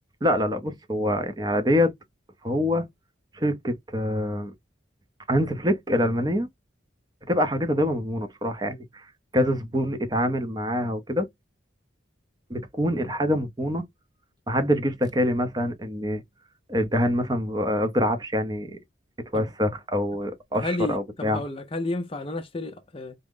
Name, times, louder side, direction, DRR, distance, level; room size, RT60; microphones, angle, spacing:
voice 1, 0.2-1.9 2.4-2.9 3.3-4.5 5.3-6.5 7.3-11.3 12.5-13.8 14.5-16.2 16.7-18.8 19.3-21.4, equal, 20° right, 0.6 m, -25 dB
voice 2, 20.5-23.1, left 2 dB, 25° left, 0.5 m, -31 dB
3.5 x 2.0 x 3.6 m
head